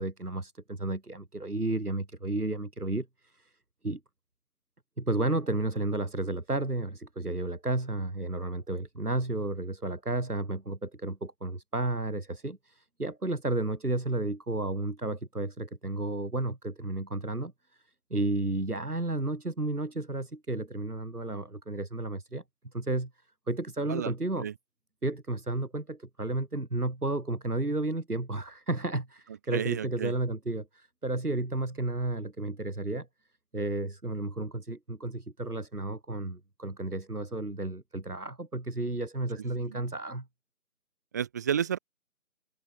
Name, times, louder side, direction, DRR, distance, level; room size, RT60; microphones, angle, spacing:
voice 1, 0.0-3.5 3.8-4.0 5.0-17.5 18.1-22.4 22.7-23.1 23.5-24.5 25.0-33.1 33.5-40.3, right 2 dB, 80° right, 4.9 m, -32 dB
voice 2, 29.5-30.1 39.7-39.8 41.1-41.8, right 8 dB, 10° right, 4.1 m, -31 dB
figure-of-eight pair, 170°, 44 cm